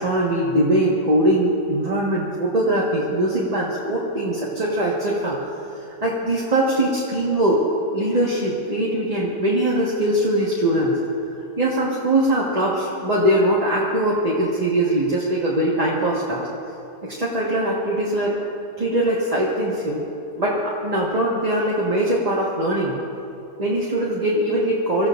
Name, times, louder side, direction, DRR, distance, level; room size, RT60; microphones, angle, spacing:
voice 1, 0.0-5.4 5.7-7.6 7.9-11.0 11.6-16.4 17.0-18.3 18.8-20.0 20.4-23.0 23.6-25.1, right 1 dB, 25° right, -5 dB, 1.5 m, -21 dB
25.5 x 14.5 x 2.6 m, 2.8 s
omnidirectional pair, 1.7 m